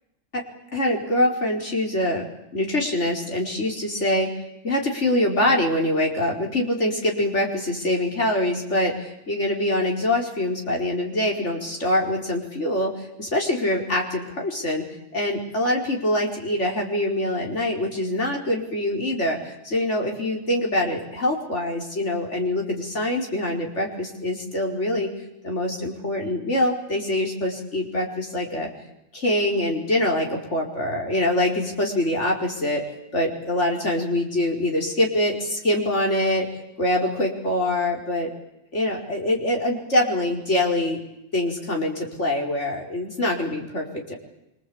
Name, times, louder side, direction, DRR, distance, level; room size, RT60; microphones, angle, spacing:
voice 1, 0.7-2.3 2.5-4.3 4.6-14.8 15.1-25.1 25.4-28.7 29.1-32.8 33.1-36.5 36.8-38.3 38.7-41.0 41.3-44.1, left 1 dB, 75° left, 1 dB, 5.1 m, -24 dB
27.0 x 25.5 x 8.7 m, 0.88 s
omnidirectional pair, 1.2 m